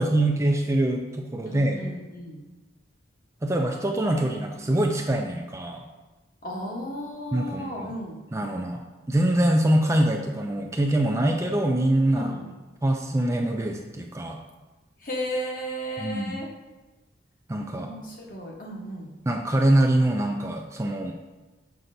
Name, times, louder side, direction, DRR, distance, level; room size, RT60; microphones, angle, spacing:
voice 1, 0.0-1.8 3.4-5.8 7.3-7.9 8.3-8.8 9.1-12.4 12.8-14.4 16.0-16.4 17.5-17.9 19.3-21.2, right 1 dB, 15° right, 2 dB, 0.3 m, -24 dB
voice 2, 1.5-2.4 6.4-8.2 12.2-12.5 15.0-16.5 17.8-19.1, equal, 45° left, -1 dB, 1.1 m, -34 dB
6.5 x 5.8 x 2.6 m, 1.2 s
head